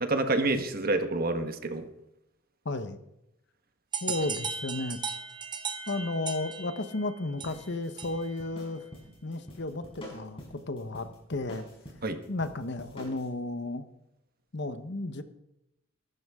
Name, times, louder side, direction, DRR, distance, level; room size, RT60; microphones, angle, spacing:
voice 1, 0.0-1.9 12.0-12.2, right 2 dB, 45° right, 7 dB, 1.5 m, -28 dB
voice 2, 2.6-3.0 4.0-5.0 5.9-8.8 9.2-11.6 12.3-13.8 14.5-15.2, left 2 dB, 55° left, 10 dB, 1.1 m, -33 dB
sound 1, 3.9-8.4, right 5 dB, 20° right, 1.1 m, -37 dB
sound 2, 7.4-13.3, equal, 25° left, 5.0 m, -47 dB
22.5 x 12.5 x 3.7 m, 0.86 s
head